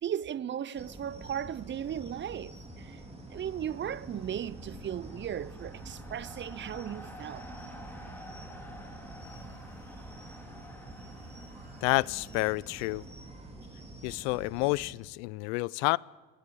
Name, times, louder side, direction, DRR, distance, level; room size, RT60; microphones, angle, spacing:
voice 1, 0.0-3.0 3.3-7.5, right 9 dB, 30° right, 0.5 m, -36 dB
sound 1, 0.7-14.9, right 2 dB, 15° right, 3.6 m, -47 dB
sound 2, 2.2-14.1, left 1 dB, 5° left, 3.4 m, -52 dB
sound 3, 8.0-15.0, right 3 dB, 80° right, 6.2 m, -66 dB
voice 2, 11.8-13.0 14.0-16.0, left 25 dB, 75° left, 0.5 m, -29 dB
23.5 x 16.5 x 6.9 m
supercardioid pair, 85°, 36 cm